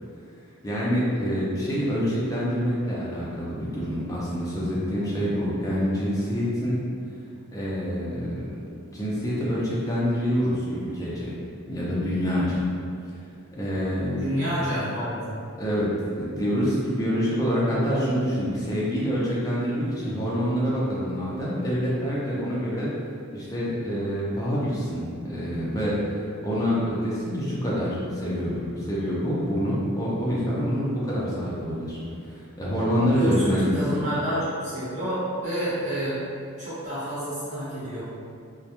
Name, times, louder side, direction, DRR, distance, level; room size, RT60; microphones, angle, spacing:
voice 1, 0.6-6.8 7.5-8.4 8.9-11.4 11.7-12.7 13.6-14.3 15.6-15.9 16.2-22.9 23.3-32.0 32.2-33.7, equal, 15° left, -7 dB, 0.4 m, -26 dB
voice 2, 14.2-15.2 33.1-36.2 36.6-38.0, equal, 35° right, -12 dB, 1.0 m, -28 dB
2.2 x 2.1 x 2.8 m, 2.3 s
head